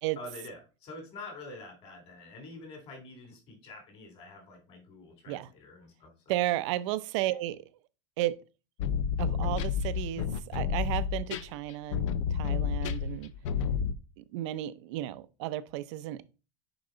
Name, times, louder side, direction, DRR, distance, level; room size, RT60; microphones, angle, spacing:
voice 1, 0.2-6.1, left 2 dB, 35° left, 3.2 m, -46 dB
voice 2, 6.3-7.6 8.2-8.4 9.2-12.0 12.3-13.3 14.2-16.2, right 15 dB, 70° right, 0.7 m, -33 dB
sound 1, 8.8-13.9, left 7 dB, 80° left, 0.7 m, -30 dB
6.9 x 5.3 x 3.9 m
supercardioid pair, 155°, 16 cm